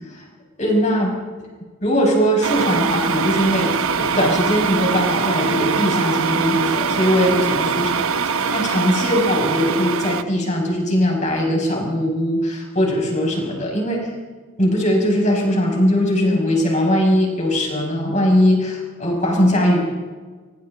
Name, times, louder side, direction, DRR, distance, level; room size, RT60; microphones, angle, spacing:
voice 1, 0.6-1.2 1.8-8.0 8.5-14.1 14.6-19.8, equal, 35° left, 0 dB, 6.2 m, -20 dB
sound 1, 2.4-10.2, right 6 dB, 80° right, 0.9 m, -22 dB
26.0 x 24.5 x 4.0 m, 1.4 s
head